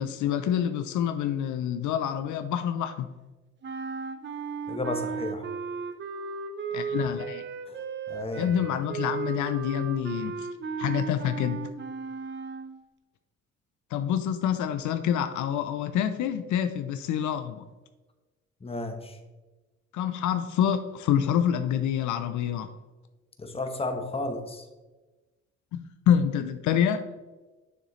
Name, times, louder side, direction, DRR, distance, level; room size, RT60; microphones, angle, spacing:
voice 1, 0.0-3.1 6.7-7.4 8.4-10.5 10.8-11.7 13.9-17.7 19.9-22.7 25.7-27.0, left 9 dB, 75° left, 9 dB, 0.5 m, -27 dB
sound 1, 3.6-12.8, right 5 dB, 40° right, 0.7 m, -35 dB
voice 2, 4.7-5.5 8.1-8.5 18.6-19.2 23.4-24.7, left 2 dB, 20° left, 5 dB, 1.0 m, -33 dB
6.6 x 6.6 x 3.1 m, 1.2 s
cardioid pair, 90°, 30 cm